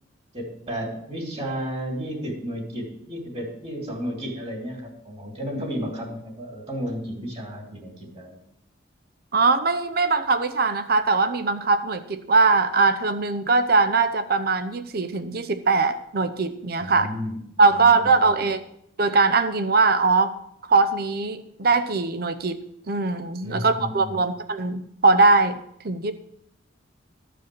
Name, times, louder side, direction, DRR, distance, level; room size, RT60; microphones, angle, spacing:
voice 1, 0.3-8.4 16.8-17.4 17.7-18.4 23.4-24.2, equal, 30° right, 1 dB, 2.9 m, -33 dB
voice 2, 9.3-17.1 17.6-18.6 19.0-20.3 20.7-26.1, right 3 dB, 50° right, 11 dB, 0.6 m, -21 dB
13.5 x 5.1 x 7.6 m, 0.73 s
head